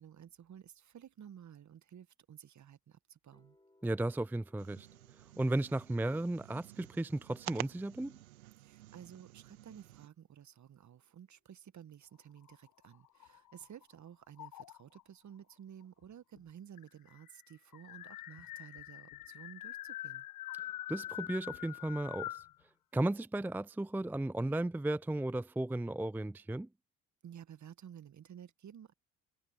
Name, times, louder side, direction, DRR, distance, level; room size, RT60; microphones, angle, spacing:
voice 1, 0.0-3.6 8.6-20.3 27.2-28.9, right 9 dB, 45° right, 1.7 m, -53 dB
sound 1, 3.3-9.4, left 1 dB, 10° left, 6.0 m, -72 dB
voice 2, 3.8-4.9 5.4-8.2 20.9-22.4 22.9-26.7, right 1 dB, 5° right, 0.5 m, -35 dB
sound 2, 4.6-10.1, right 17 dB, 80° right, 1.8 m, -49 dB
sound 3, 12.4-13.8 14.4-15.0 16.0-16.1 16.4-16.5 16.8-22.5, left 14 dB, 50° left, 1.2 m, -45 dB
hypercardioid pair, 50°, 41 cm